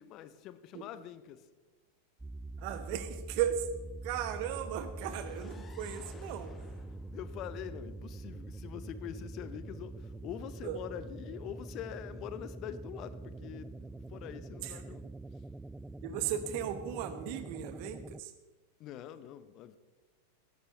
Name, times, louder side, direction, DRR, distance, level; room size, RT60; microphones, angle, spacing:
voice 1, 0.0-1.5 7.1-15.4 18.8-19.8, left 10 dB, 35° left, 0.7 m, -44 dB
sound 1, 2.2-18.2, right 2 dB, 5° right, 0.3 m, -45 dB
voice 2, 2.6-3.7 4.0-6.6 10.6-10.8 14.6-14.8 16.0-18.3, right 10 dB, 45° right, 1.1 m, -36 dB
sound 2, 5.0-8.9, left 5 dB, 20° left, 1.1 m, -57 dB
18.0 x 11.0 x 3.2 m
figure-of-eight pair, 90°, 0 cm